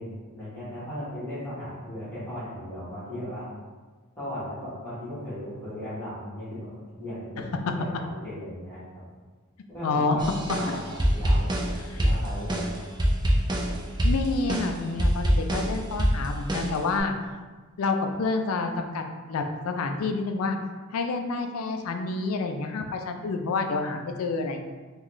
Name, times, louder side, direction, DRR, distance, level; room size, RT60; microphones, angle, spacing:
voice 1, 0.0-3.5 4.2-6.7 7.0-8.8 9.7-12.8, equal, 10° left, -13 dB, 1.3 m, -37 dB
voice 2, 9.8-10.2 10.7-10.8 11.9-12.0 14.0-17.1 17.8-19.0 19.3-20.6 20.9-24.6, left 3 dB, 75° left, 5 dB, 0.4 m, -28 dB
sound 1, 10.2-17.0, equal, 20° right, 0.4 m, -25 dB
3.7 x 2.3 x 3.1 m, 1.3 s
head